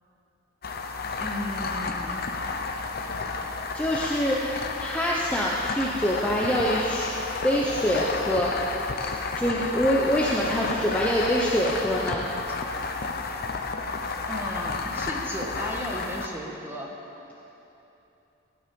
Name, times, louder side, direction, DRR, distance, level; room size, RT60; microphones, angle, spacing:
sound 1, 0.6-16.3, left 4 dB, 50° left, 0.8 m, -31 dB
voice 1, 1.2-2.3 14.3-16.9, equal, 10° right, -1 dB, 1.4 m, -35 dB
voice 2, 3.7-7.1 7.4-12.2, equal, 5° left, -4 dB, 0.8 m, -25 dB
15.5 x 9.4 x 5.3 m, 3.0 s
head